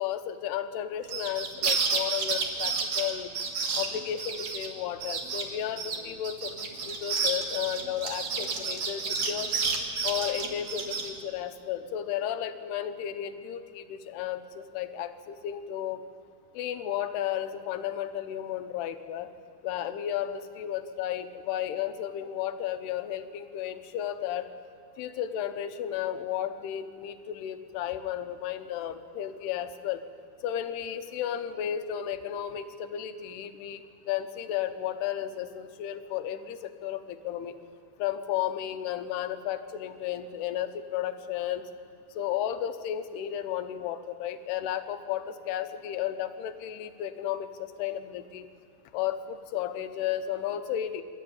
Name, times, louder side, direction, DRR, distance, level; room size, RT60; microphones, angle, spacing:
voice 1, 0.0-3.3 3.8-9.5 10.0-16.0 16.5-19.3 19.6-24.5 25.0-30.0 30.4-33.8 34.1-37.5 38.0-41.6 42.2-48.5 48.9-51.0, left 10 dB, 85° left, 9 dB, 3.0 m, -33 dB
sound 1, 1.0-4.7 5.0-5.4 5.8-11.1, right 5 dB, 50° right, 2.4 m, -30 dB
26.0 x 12.0 x 8.7 m, 2.4 s
omnidirectional pair, 4.6 m